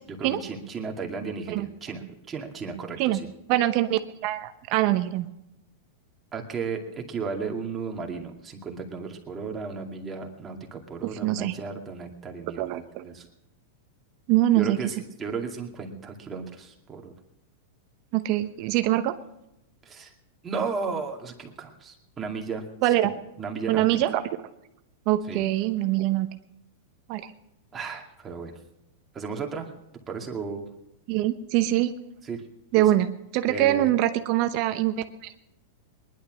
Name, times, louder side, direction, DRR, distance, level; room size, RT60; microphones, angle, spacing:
voice 1, 0.1-3.3 6.3-13.3 14.5-17.1 19.9-20.1 20.4-22.7 23.0-23.1 23.4-23.9 25.3-25.4 27.7-28.5 29.1-29.7 30.1-30.7 32.2-32.4 32.7-32.8 33.5-33.9, right 5 dB, 20° right, 2 dB, 2.3 m, -34 dB
voice 2, 3.5-5.3 11.0-11.5 12.6-13.0 14.3-14.8 18.1-19.1 22.8-23.1 23.7-24.2 25.1-26.3 27.1-27.2 31.1-31.9 32.7-33.1 33.3-35.4, right 14 dB, 50° right, 9 dB, 0.9 m, -24 dB
19.5 x 11.0 x 6.3 m, 0.89 s
hypercardioid pair, 125°, 0 cm